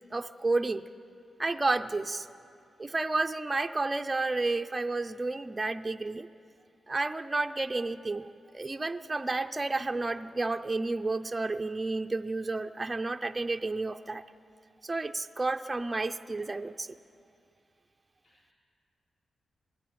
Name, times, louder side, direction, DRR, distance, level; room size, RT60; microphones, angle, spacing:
voice 1, 0.1-0.9 1.4-2.3 2.8-6.3 6.9-14.2 14.8-17.0, right 3 dB, 20° right, 7 dB, 0.5 m, -31 dB
voice 2, 1.6-1.9 18.2-18.5, left 2 dB, 50° left, -7 dB, 4.3 m, -59 dB
22.5 x 15.5 x 9.3 m, 2.5 s
wide cardioid pair, 155°, 0 cm